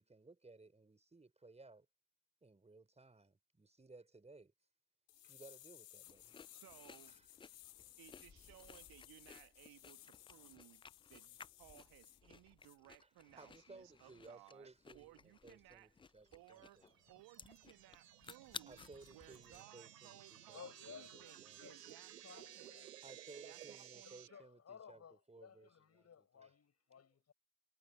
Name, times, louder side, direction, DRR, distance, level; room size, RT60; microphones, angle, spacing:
voice 1, 0.0-1.9 2.4-4.5 5.2-6.4 7.1-7.6 13.0-13.1 13.4-16.8 18.7-20.6 20.9-21.6 23.0-25.0 25.3-26.5, right 3 dB, 15° right, 5.4 m, -60 dB
sound 1, 5.1-12.2 12.6-12.8, left 14 dB, 75° left, 2.3 m, -60 dB
sound 2, 6.0-19.6, left 5 dB, 10° left, 0.5 m, -58 dB
voice 2, 6.5-7.2 8.0-10.8 11.1-15.9 16.3-16.8 17.1-18.8 19.1-22.8 23.4-24.4, right 17 dB, 45° right, 1.7 m, -62 dB
sound 3, 16.5-24.3, right 11 dB, 80° right, 2.8 m, -57 dB
voice 3, 20.5-22.9 24.0-27.3, left 7 dB, 30° left, 6.9 m, -58 dB
figure-of-eight pair, 65°, 48 cm